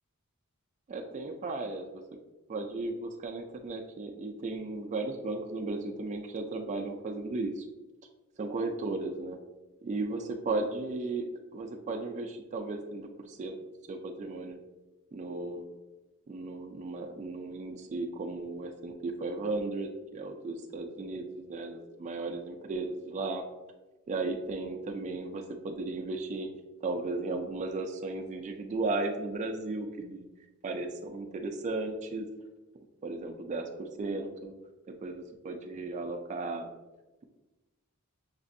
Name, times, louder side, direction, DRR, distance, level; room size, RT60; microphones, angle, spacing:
voice 1, 0.9-2.0 2.5-7.7 8.4-9.4 9.8-11.2 11.5-13.6 13.9-14.6 15.1-15.7 16.3-23.4 24.1-26.5 26.8-30.3 30.6-32.3 33.0-34.5 35.0-36.7, right 3 dB, 35° right, 3 dB, 0.3 m, -35 dB
5.9 x 2.5 x 2.5 m, 1.1 s
head